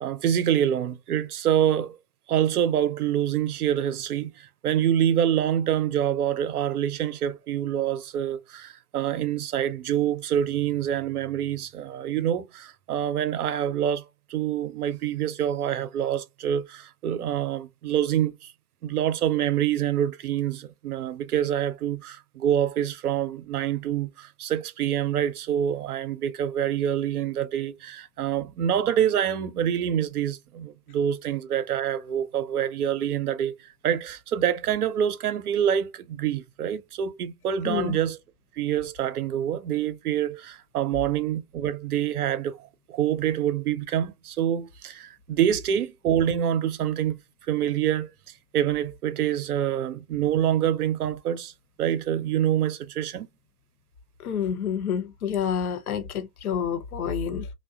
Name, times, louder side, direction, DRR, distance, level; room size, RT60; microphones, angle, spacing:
voice 1, 0.0-2.0 2.3-18.5 18.8-33.5 33.8-38.2 38.6-47.2 47.5-48.1 48.5-51.5 51.8-53.3, right 10 dB, 70° right, 0.6 m, -26 dB
voice 2, 37.6-38.0 54.2-57.5, left 7 dB, 65° left, 0.8 m, -28 dB
2.7 x 2.2 x 2.3 m
figure-of-eight pair, 110°, 47 cm